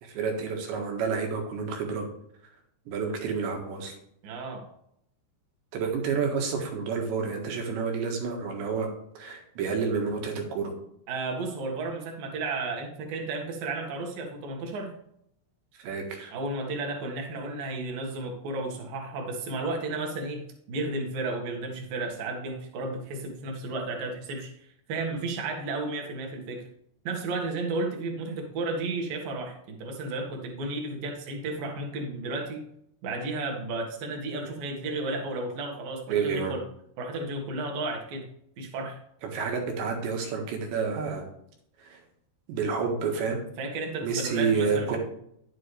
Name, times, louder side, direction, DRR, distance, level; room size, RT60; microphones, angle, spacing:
voice 1, 0.0-2.1 2.9-4.0 5.7-8.9 9.2-10.7 15.8-16.3 36.1-36.6 39.2-41.3 41.8-42.0 42.5-43.4 44.0-45.0, right 5 dB, 90° right, 2 dB, 3.9 m, -29 dB
voice 2, 4.2-4.7 11.1-14.9 16.3-20.4 20.7-26.6 27.0-32.6 33.0-36.6 37.0-38.3 38.6-39.0 43.6-45.0, right 2 dB, 60° right, 1 dB, 3.0 m, -33 dB
10.5 x 8.6 x 3.3 m, 0.73 s
omnidirectional pair, 5.0 m